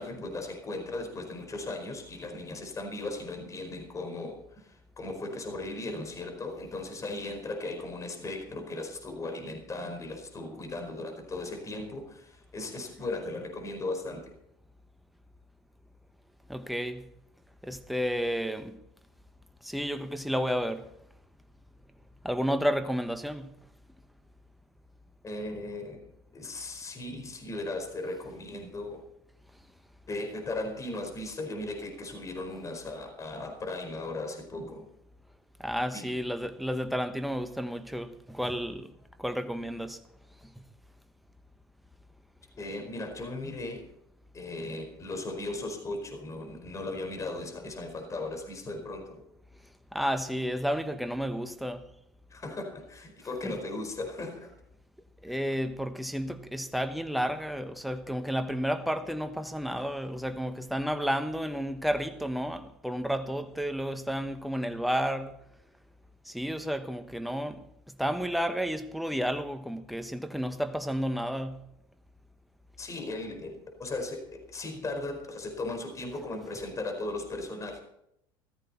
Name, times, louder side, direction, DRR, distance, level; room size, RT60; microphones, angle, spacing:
voice 1, 0.0-14.3 25.2-26.0 26.3-29.0 30.1-34.9 35.9-36.1 42.6-43.8 44.3-49.2 52.3-54.5 55.3-55.4 72.8-77.8, left 2 dB, 25° left, 4.7 m, -37 dB
voice 2, 16.5-17.1 17.6-18.8 19.6-20.9 22.2-23.5 35.6-38.9 39.2-40.0 40.4-40.5 49.9-51.9 53.4-53.5 55.2-65.4 66.2-71.6, equal, ahead, 1.2 m, -31 dB
15.5 x 14.5 x 4.3 m
hypercardioid pair, 80°, 12 cm